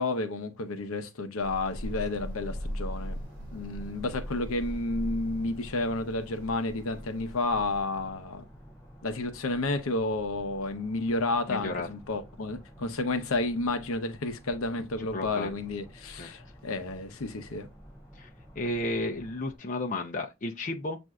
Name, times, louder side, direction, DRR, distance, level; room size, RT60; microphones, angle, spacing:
voice 1, 0.0-3.2 3.5-8.4 9.0-17.7, left 2 dB, 75° left, 0.7 m, -31 dB
sound 1, 1.4-7.8, equal, 60° right, 1.2 m, -39 dB
sound 2, 1.7-19.6, equal, 5° right, 2.7 m, -51 dB
voice 2, 11.5-11.9 15.1-15.5 16.1-16.3 18.2-18.3 18.6-21.0, left 2 dB, 35° left, 0.6 m, -33 dB
7.4 x 2.6 x 2.3 m
head